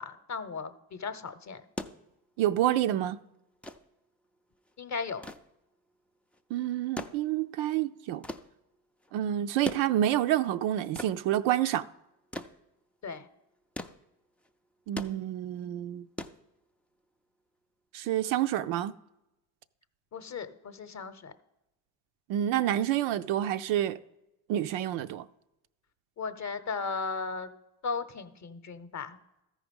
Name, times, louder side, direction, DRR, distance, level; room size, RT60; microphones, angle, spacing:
voice 1, 0.0-1.6 4.8-5.2 13.0-13.3 20.1-21.3 26.2-27.5 27.8-29.2, left 4 dB, 35° left, 0.8 m, -36 dB
sound 1, 1.5-17.0 18.3-18.4, left 1 dB, 5° left, 0.3 m, -44 dB
voice 2, 2.4-3.2 6.5-8.2 9.1-11.9 14.9-16.1 17.9-18.9 22.3-24.0 24.5-25.3, right 12 dB, 70° right, 0.5 m, -28 dB
13.5 x 4.9 x 5.3 m
supercardioid pair, 65°, 49 cm